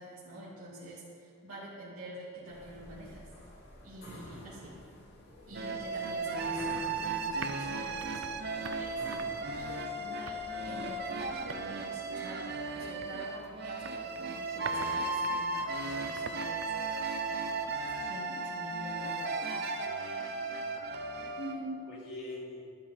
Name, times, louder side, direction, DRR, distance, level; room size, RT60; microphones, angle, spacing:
voice 1, 0.0-3.5 3.8-4.9 5.5-9.2 9.5-17.0 17.3-19.7 20.3-20.5 21.3-21.8, right 1 dB, 85° right, -9 dB, 2.7 m, -46 dB
sound 1, 2.5-11.4, left 1 dB, 50° left, 3.0 m, -51 dB
sound 2, 5.5-21.5, right 3 dB, 50° right, 0.9 m, -35 dB
sound 3, 6.6-18.0, right 5 dB, 65° right, 0.6 m, -49 dB
voice 2, 20.3-21.3 21.9-22.6, left 2 dB, 75° left, -5 dB, 3.6 m, -45 dB
13.0 x 12.5 x 4.4 m, 2.4 s
head